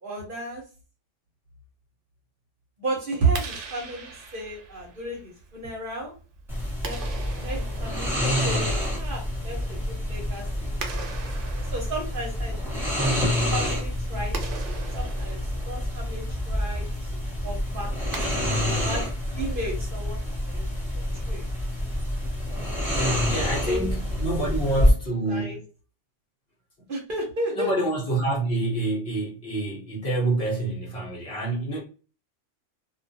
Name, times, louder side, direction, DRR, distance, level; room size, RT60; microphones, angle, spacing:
voice 1, 0.0-0.6 2.8-6.1 6.8-12.9 13.5-17.9 18.7-19.1 19.4-20.6 20.9-21.5 23.0-23.9 24.8-24.9 25.2-25.6 26.9-27.8, right 2 dB, 50° right, 0.8 m, -33 dB
Clapping, 3.2-19.9, right 5 dB, 75° right, 0.9 m, -43 dB
sound 1, 6.5-24.9, left 1 dB, ahead, 1.0 m, -27 dB
voice 2, 23.3-25.5 27.5-31.8, right 2 dB, 50° left, 1.1 m, -27 dB
2.4 x 2.4 x 2.6 m
omnidirectional pair, 1.3 m